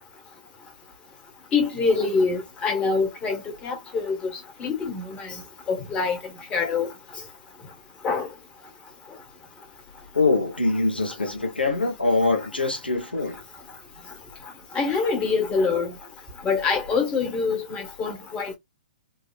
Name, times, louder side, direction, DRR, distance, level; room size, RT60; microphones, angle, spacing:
voice 1, 1.5-4.2 4.6-5.4 5.7-6.2 6.5-6.9 8.0-8.3 14.7-15.9 16.4-18.6, left 4 dB, 20° left, 1.4 m, -25 dB
voice 2, 10.1-13.4, left 3 dB, 90° left, 1.3 m, -23 dB
4.1 x 2.4 x 2.5 m
figure-of-eight pair, 120°, 5 cm